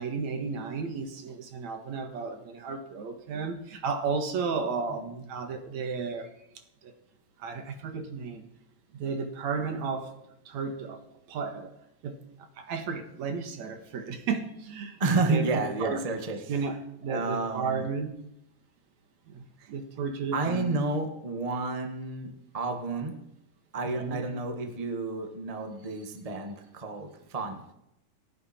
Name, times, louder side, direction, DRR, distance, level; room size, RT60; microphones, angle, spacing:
voice 1, 0.0-6.3 6.8-6.9 7.4-8.5 8.9-10.1 10.5-11.0 11.3-11.7 12.0-12.2 12.6-15.0 15.3-15.5 15.8-16.0 16.5-18.1 19.3-20.8 23.8-24.3, right 5 dB, 60° right, 2.6 m, -33 dB
voice 2, 15.0-16.7 17.1-17.8 19.6-19.7 20.3-23.2 23.7-27.6, right 3 dB, 80° right, 0.3 m, -31 dB
29.0 x 9.8 x 4.4 m
omnidirectional pair, 4.1 m